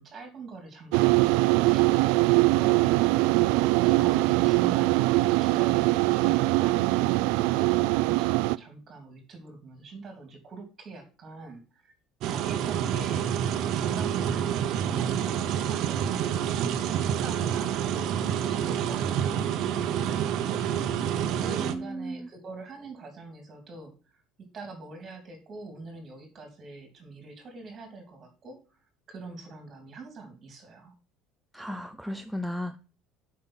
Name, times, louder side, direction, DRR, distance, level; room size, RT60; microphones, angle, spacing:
voice 1, 0.0-1.9 2.4-11.9 12.2-13.3 13.6-16.4 16.9-20.6 21.2-24.2 24.5-28.8 29.1-30.9, right 3 dB, 25° right, 4 dB, 3.0 m, -44 dB
sound 1, 0.9-8.6, right 20 dB, 80° right, 0.3 m, -22 dB
sound 2, 12.2-21.7, right 9 dB, 50° right, 0.9 m, -28 dB
voice 2, 21.6-22.3 31.5-32.8, equal, ahead, 8 dB, 0.4 m, -35 dB
7.7 x 5.5 x 5.7 m, 0.34 s
cardioid pair, 160°, 0 cm